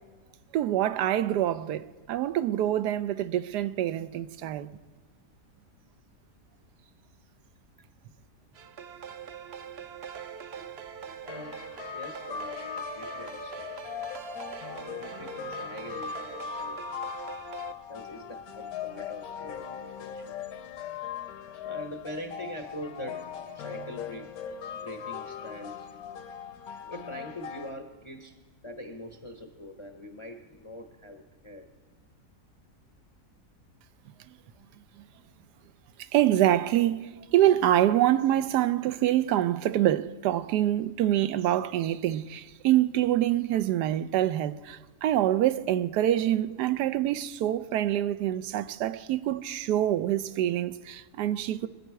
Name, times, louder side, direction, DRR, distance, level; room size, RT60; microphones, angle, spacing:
voice 1, 0.5-4.7 36.1-51.7, right 12 dB, 85° right, 1.2 m, -25 dB
sound 1, 8.5-17.7, right 7 dB, 55° right, 0.7 m, -43 dB
voice 2, 11.2-11.6 11.9-13.7 14.6-16.8 17.9-20.3 21.6-23.3 23.5-24.4 24.7-25.9 26.9-28.4 28.6-31.7, equal, 30° left, 0.6 m, -43 dB
sound 2, 11.3-27.7, left 7 dB, 70° left, 1.3 m, -39 dB
23.0 x 9.3 x 4.6 m
omnidirectional pair, 1.7 m